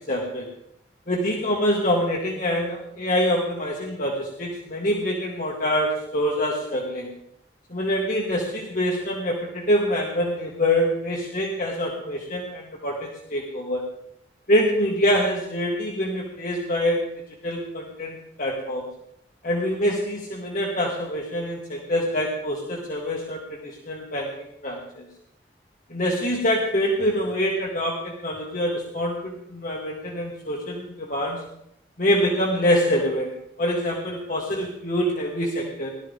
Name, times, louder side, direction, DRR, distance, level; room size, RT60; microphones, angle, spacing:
voice 1, 0.1-0.5 1.1-7.1 7.7-13.8 14.5-17.0 17.4-18.9 19.4-25.1 25.9-31.4 32.0-33.3 33.6-35.9, equal, 50° left, -2 dB, 2.0 m, -25 dB
19.0 x 12.5 x 3.7 m, 0.76 s
head